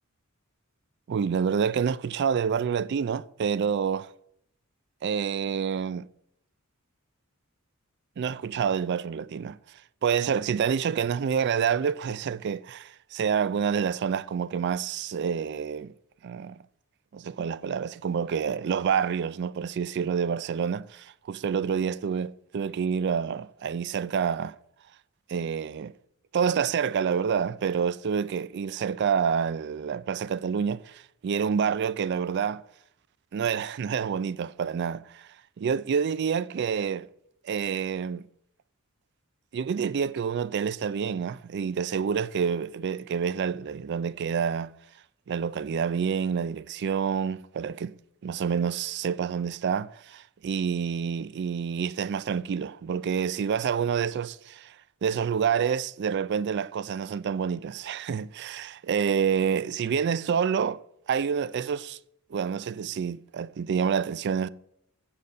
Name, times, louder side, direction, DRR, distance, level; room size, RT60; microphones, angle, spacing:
voice 1, 1.1-4.1 5.0-6.1 8.2-9.6 10.0-15.9 16.2-16.6 17.1-24.6 25.3-25.9 26.3-32.6 33.3-35.3 35.6-37.1 37.4-38.2 39.5-44.7 45.3-47.9 48.2-54.8 55.0-60.8 61.1-62.0 62.3-64.5, right 7 dB, 50° right, 0.3 m, -28 dB
7.4 x 6.6 x 6.6 m
head